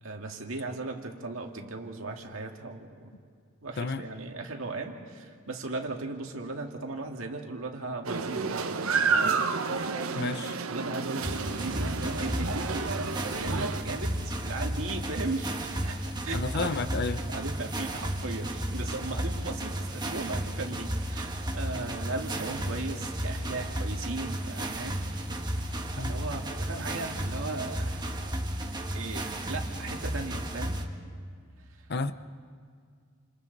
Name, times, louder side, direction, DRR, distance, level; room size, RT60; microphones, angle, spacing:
voice 1, 0.0-3.1 3.6-8.8 9.1-9.4 10.7-12.7 13.4-16.8 17.3-25.0 26.0-28.1 28.9-30.8, right 2 dB, 70° right, 2.2 m, -37 dB
sound 1, 8.0-13.8, right 4 dB, 85° right, 1.1 m, -30 dB
voice 2, 10.2-10.5 16.3-17.2 26.0-26.2 31.9-32.1, left 3 dB, 50° left, 0.8 m, -31 dB
sound 2, 11.2-30.8, right 1 dB, 20° right, 1.5 m, -33 dB
29.0 x 27.5 x 4.1 m
head